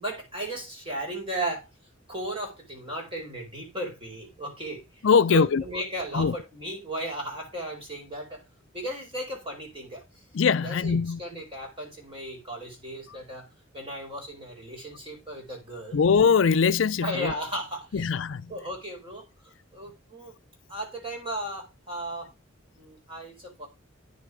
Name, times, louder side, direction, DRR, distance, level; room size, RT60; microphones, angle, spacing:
voice 1, 0.0-1.7 2.1-8.4 8.7-10.2 10.6-13.5 13.7-16.0 17.0-18.2 18.5-20.3 20.7-22.3 22.8-23.7, right 1 dB, 25° right, 4.7 m, -36 dB
voice 2, 5.0-5.6 6.1-6.3 10.3-11.2 15.9-17.3 17.9-18.4, left 6 dB, 65° left, 0.4 m, -21 dB
9.9 x 6.9 x 4.9 m
head